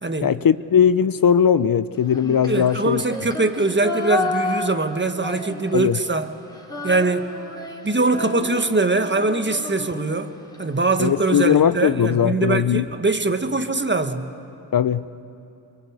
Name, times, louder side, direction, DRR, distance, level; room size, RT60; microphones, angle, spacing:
voice 1, 0.2-3.0 5.7-6.0 11.0-12.9 14.7-15.0, left 8 dB, 55° left, 14 dB, 0.7 m, -19 dB
Female singing, 2.1-6.0 6.3-10.6, left 2 dB, 10° left, 3.3 m, -31 dB
voice 2, 2.5-6.3 6.8-7.3 7.8-10.3 10.6-14.3, right 3 dB, 25° right, 8 dB, 1.6 m, -22 dB
23.5 x 22.5 x 8.2 m, 2.8 s
cardioid pair, 50°, 42 cm